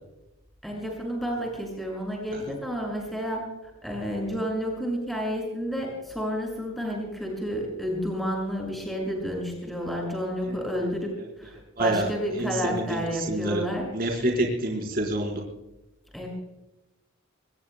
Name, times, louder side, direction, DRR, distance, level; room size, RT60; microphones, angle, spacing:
voice 1, 0.6-11.1 11.4-13.9 14.2-14.3 16.1-16.3, equal, ahead, -1 dB, 6.1 m, -31 dB
voice 2, 11.8-12.1 12.4-12.8 13.3-13.6 13.9-15.4, right 1 dB, 45° right, 0 dB, 4.2 m, -26 dB
25.5 x 21.0 x 2.2 m, 1.0 s
head